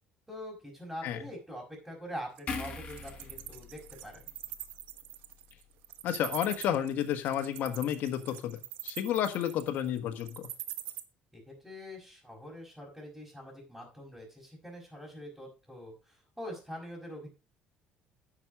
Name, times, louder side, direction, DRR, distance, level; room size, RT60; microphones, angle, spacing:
voice 1, 0.3-4.3 11.3-17.3, equal, 5° right, -4 dB, 4.9 m, -44 dB
Wild animals, 2.4-11.0, right 15 dB, 85° right, 1.1 m, -43 dB
sound 1, 2.5-5.8 6.2-6.4, left 4 dB, 40° left, 4.3 m, -43 dB
voice 2, 6.0-10.5, left 10 dB, 65° left, 5 dB, 1.4 m, -31 dB
10.5 x 6.2 x 5.1 m, 0.33 s
cardioid pair, 105°, 3 cm